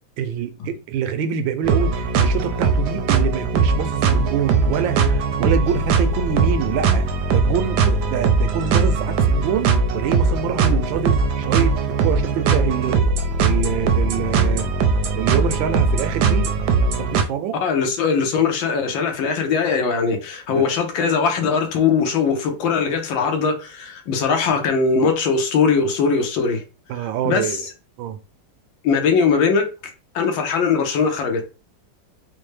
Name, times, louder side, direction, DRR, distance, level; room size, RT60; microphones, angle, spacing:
voice 1, 0.2-7.1 7.3-11.7 12.0-13.1 13.4-14.7 15.1-16.5 17.0-17.6 20.5-20.7 26.9-27.6 28.0-28.2, right 8 dB, 90° right, 1.4 m, -26 dB
sound 1, 1.6-17.2, right 4 dB, 70° right, 1.0 m, -20 dB
voice 2, 17.6-26.6 27.2-27.6 28.8-29.7 30.1-31.4, left 5 dB, 85° left, 1.6 m, -20 dB
4.3 x 2.1 x 3.2 m
omnidirectional pair, 2.1 m